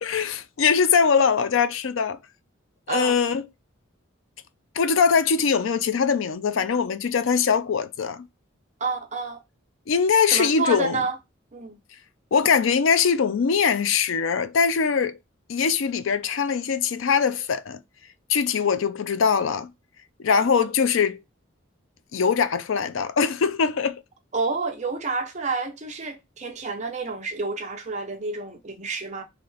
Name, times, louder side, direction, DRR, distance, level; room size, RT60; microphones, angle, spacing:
voice 1, 0.0-2.2 2.9-3.4 4.8-8.2 9.9-11.0 12.3-15.2 15.5-17.8 18.3-19.7 20.2-21.2 22.1-24.0, left 6 dB, 75° left, 0.4 m, -22 dB
voice 2, 8.8-9.4 10.3-11.2 11.5-11.8 20.3-20.7 24.3-29.2, right 3 dB, 35° right, 0.8 m, -29 dB
3.2 x 2.8 x 4.0 m
head